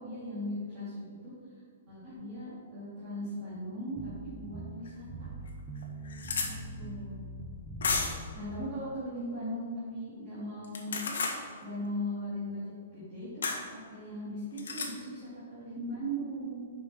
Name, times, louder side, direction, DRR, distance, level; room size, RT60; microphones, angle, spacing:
voice 1, 0.0-1.3 1.9-5.1 6.3-7.2 8.3-12.6 12.9-13.4 13.7-16.6, equal, 25° right, -11 dB, 2.2 m, -38 dB
sound 1, 4.0-8.5, right 2 dB, 10° right, 0.6 m, -43 dB
sound 2, 4.9-5.0 5.5-5.6 5.8-6.5 7.8-8.3 10.6-11.4 13.4-13.6 14.6-14.9, left 4 dB, 85° left, 1.3 m, -32 dB
6.2 x 5.8 x 5.8 m, 2.1 s
hypercardioid pair, 170°, 0 cm